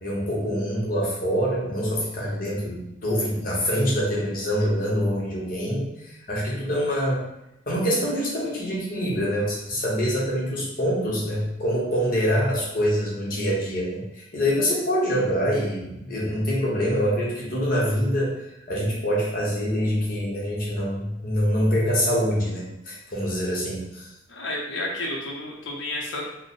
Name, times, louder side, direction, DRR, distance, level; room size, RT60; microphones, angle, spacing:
voice 1, 0.0-7.2 7.7-18.3 18.7-24.1, equal, 45° left, -5 dB, 1.0 m, -25 dB
voice 2, 24.3-26.2, left 1 dB, 65° left, -2 dB, 0.7 m, -31 dB
3.3 x 2.1 x 4.1 m, 0.86 s
head